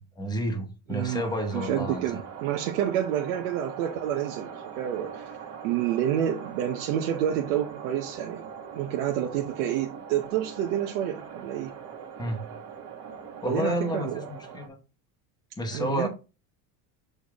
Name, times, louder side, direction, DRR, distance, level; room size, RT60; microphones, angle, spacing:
voice 1, 0.0-2.0 12.2-12.5 13.4-14.8 15.6-16.1, equal, 10° left, 1.0 m, -30 dB
voice 2, 0.9-5.4 5.6-8.4 8.7-11.8 13.4-14.3 15.7-16.1, right 10 dB, 85° right, 1.0 m, -29 dB
sound 1, 1.0-14.7, right 7 dB, 40° right, 1.5 m, -42 dB
6.9 x 4.4 x 3.5 m
cardioid pair, 160°, 38 cm